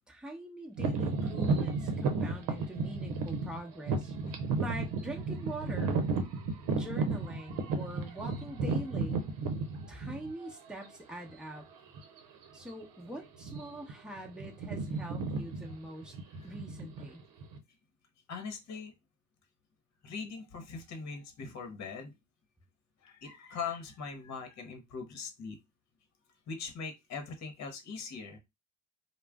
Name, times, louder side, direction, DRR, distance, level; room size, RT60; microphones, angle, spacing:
voice 1, 0.1-4.1 4.6-6.0 6.7-9.2 9.9-11.7 12.5-16.1 16.4-17.2, right 1 dB, 5° right, 0 dB, 0.8 m, -43 dB
sound 1, 0.8-10.5 11.2-11.3 11.9-12.2 12.5-12.7 13.3-13.9 14.2-17.6, right 3 dB, 80° right, 0.7 m, -33 dB
voice 2, 18.3-18.9 20.0-22.1 23.0-25.6 26.5-28.4, left 5 dB, 55° left, 5 dB, 1.0 m, -41 dB
2.4 x 2.1 x 3.4 m, 0.22 s
supercardioid pair, 80°, 33 cm